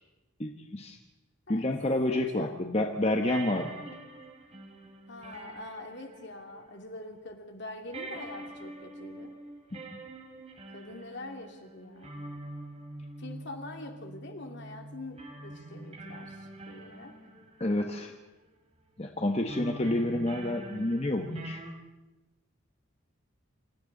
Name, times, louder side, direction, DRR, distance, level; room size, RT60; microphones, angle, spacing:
voice 1, 0.4-1.0 1.5-3.9 9.7-10.0 17.6-18.1 19.0-21.6, left 1 dB, 30° left, 3 dB, 1.3 m, -29 dB
voice 2, 2.1-2.5 5.1-9.4 10.7-12.2 13.2-17.2, left 2 dB, 60° left, 4 dB, 2.7 m, -44 dB
sound 1, 3.3-7.1 7.3-7.4 7.9-18.4 19.4-21.7, right 2 dB, 30° right, 3.1 m, -45 dB
28.0 x 26.5 x 4.0 m, 1.0 s
head